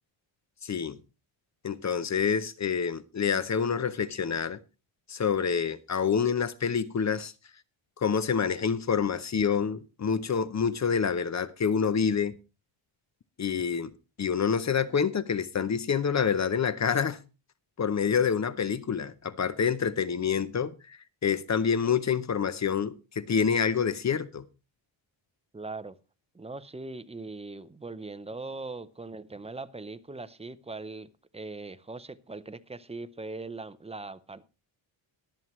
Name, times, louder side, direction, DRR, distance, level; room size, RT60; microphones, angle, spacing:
voice 1, 0.6-1.0 1.6-4.6 5.1-7.3 8.0-12.4 13.4-17.2 17.8-24.4, left 6 dB, 35° left, 0.6 m, -27 dB
voice 2, 25.5-26.0 26.3-34.4, right 3 dB, 15° right, 0.6 m, -40 dB
22.0 x 7.4 x 3.1 m
cardioid pair, 125°, 50 cm